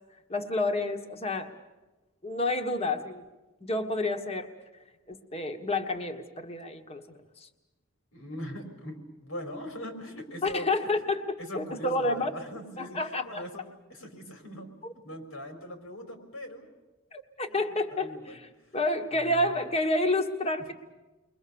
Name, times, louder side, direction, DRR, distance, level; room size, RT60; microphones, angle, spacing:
voice 1, 0.3-1.5 2.2-3.2 3.7-4.5 5.1-7.5 10.4-12.3 12.8-13.4 14.8-14.9 17.1-18.4 18.7-20.7, left 2 dB, 30° left, 6 dB, 1.5 m, -29 dB
voice 2, 8.1-10.7 11.4-14.7 15.0-16.7 17.5-18.4 19.1-19.6, equal, 90° left, 5 dB, 4.4 m, -41 dB
30.0 x 22.5 x 7.1 m, 1.1 s
head